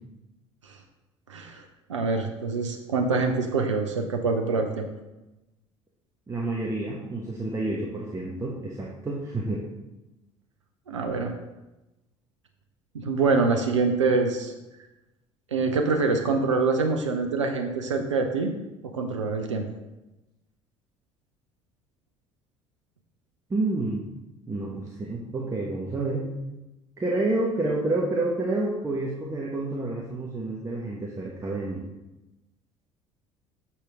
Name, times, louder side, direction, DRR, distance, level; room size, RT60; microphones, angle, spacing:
voice 1, 1.3-1.6 1.9-4.9 10.9-11.3 12.9-14.5 15.5-18.5 18.8-19.6, right 4 dB, 80° right, 4 dB, 0.5 m, -25 dB
voice 2, 6.3-9.6 23.5-24.0 24.5-26.2 27.0-31.8, right 2 dB, 20° right, -3 dB, 1.1 m, -29 dB
6.6 x 4.3 x 4.9 m, 1.0 s
figure-of-eight pair, 55°, 15 cm